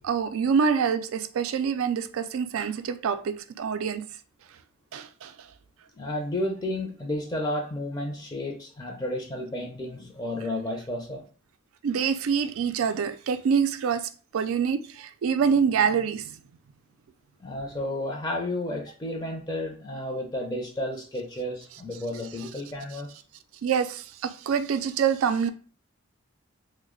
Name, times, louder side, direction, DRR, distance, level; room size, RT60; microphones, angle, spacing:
voice 1, 0.0-4.0 4.9-5.3 11.8-16.3 23.6-25.5, right 6 dB, 85° right, 0.3 m, -26 dB
voice 2, 6.0-11.2 17.4-23.1, left 1 dB, 20° left, 0.4 m, -32 dB
3.1 x 2.1 x 3.6 m
head